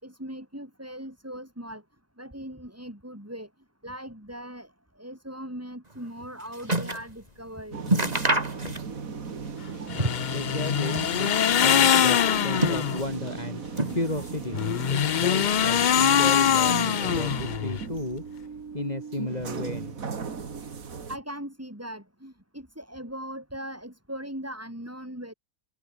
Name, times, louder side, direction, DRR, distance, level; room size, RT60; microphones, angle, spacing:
voice 1, 0.0-1.8 2.2-3.5 3.8-7.8 21.1-25.3, equal, 10° right, 5.1 m, -39 dB
sound 1, 6.0-7.1 7.5-7.6 7.8-9.2 9.4-10.4 10.7-11.6 12.2-13.3 13.7-14.4 14.7-15.5 16.2-16.3, right 2 dB, 25° right, 3.3 m, -29 dB
sound 2, 7.7-21.2, right 5 dB, 70° right, 2.4 m, -36 dB
sound 3, 9.9-13.0 14.5-17.8, left 9 dB, 80° left, 0.4 m, -23 dB
voice 2, 10.3-13.6 13.9-14.6 14.9-18.5 18.7-19.9, left 1 dB, 30° left, 4.7 m, -33 dB
omnidirectional pair, 1.5 m